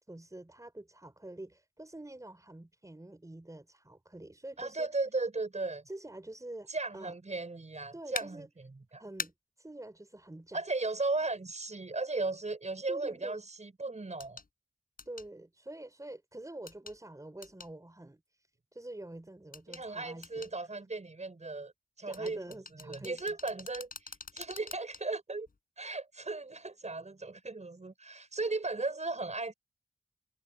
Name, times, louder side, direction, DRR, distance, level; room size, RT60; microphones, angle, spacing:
voice 1, 0.1-4.9 5.9-6.7 6.9-7.2 7.9-8.5 9.0-10.6 12.9-13.4 15.1-18.2 18.7-20.5 22.1-23.3, right 1 dB, 20° right, 4.5 m, -46 dB
voice 2, 4.6-5.9 6.7-9.0 10.5-14.4 19.7-21.7 22.0-25.5 25.8-29.5, right 3 dB, 45° right, 6.3 m, -36 dB
sound 1, 8.1-8.3 9.2-9.3 11.3-11.4 14.2-14.5 15.0-15.3 16.7-17.0 17.4-17.7 19.5-19.8 20.2-20.5 22.1-25.0 25.5-25.6, left 4 dB, 65° left, 7.0 m, -43 dB
wide cardioid pair, 90°, 16 cm